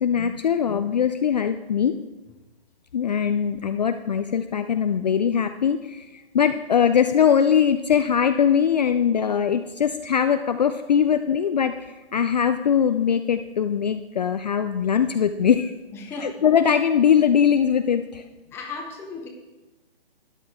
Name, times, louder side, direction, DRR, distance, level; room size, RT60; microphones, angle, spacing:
voice 1, 0.0-1.9 2.9-15.7 16.2-18.2, left 8 dB, 45° left, 8 dB, 0.4 m, -21 dB
voice 2, 15.9-16.4 18.5-19.3, left 3 dB, 10° left, 2 dB, 0.8 m, -35 dB
12.5 x 9.9 x 3.5 m, 1.1 s
figure-of-eight pair, 145°, 31 cm